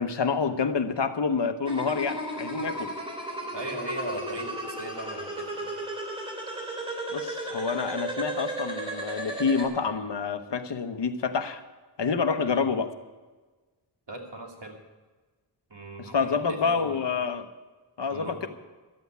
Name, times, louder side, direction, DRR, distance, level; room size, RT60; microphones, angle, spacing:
voice 1, 0.0-2.9 7.1-11.6 12.0-12.9 16.0-17.5 18.0-18.5, left 5 dB, 65° left, 9 dB, 1.0 m, -28 dB
sound 1, 1.7-9.7, right 1 dB, 10° right, 3.2 m, -34 dB
voice 2, 3.5-5.7 12.4-12.7 14.1-14.8 15.7-17.0 18.1-18.5, right 2 dB, 65° right, 1 dB, 2.4 m, -39 dB
13.0 x 7.8 x 9.4 m, 1.3 s
wide cardioid pair, 75°, 45 cm